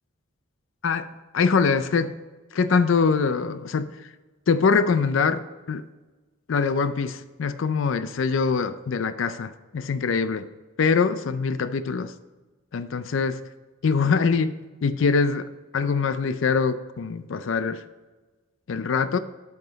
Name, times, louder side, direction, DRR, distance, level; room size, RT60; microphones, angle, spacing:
voice 1, 0.8-2.2 2.5-4.1 4.5-5.9 6.5-10.5 10.8-12.1 12.7-13.4 13.8-17.8 18.7-19.2, left 5 dB, 65° left, 12 dB, 0.4 m, -23 dB
9.2 x 5.9 x 4.0 m, 1.3 s
head